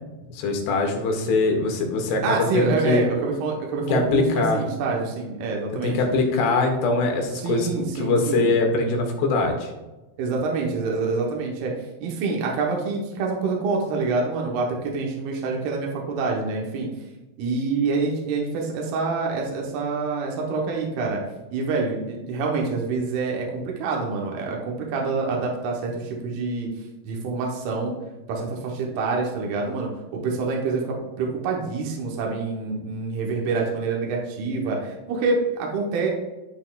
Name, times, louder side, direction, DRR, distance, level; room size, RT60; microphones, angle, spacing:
voice 1, 0.3-3.0 3.9-4.6 5.8-9.7, left 3 dB, 85° left, 2 dB, 3.2 m, -22 dB
voice 2, 2.2-6.0 7.3-8.5 10.2-11.7 12.0-16.9 17.4-21.2 21.5-26.7 27.0-27.9 28.3-36.1, right 4 dB, 75° right, -1 dB, 2.9 m, -26 dB
12.0 x 4.2 x 2.3 m, 1.1 s
omnidirectional pair, 4.6 m